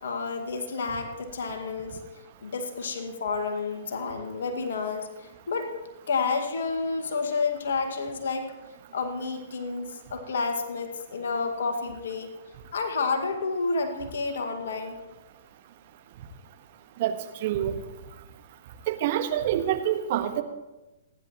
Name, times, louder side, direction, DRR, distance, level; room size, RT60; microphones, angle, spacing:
voice 1, 0.0-2.0 2.4-5.8 6.1-8.5 8.9-12.3 12.7-15.0, left 4 dB, 65° left, 5 dB, 1.9 m, -30 dB
voice 2, 17.0-17.7 18.9-20.4, right 11 dB, 45° right, 6 dB, 1.5 m, -26 dB
28.5 x 10.5 x 3.1 m, 1.0 s
figure-of-eight pair, 115°, 0 cm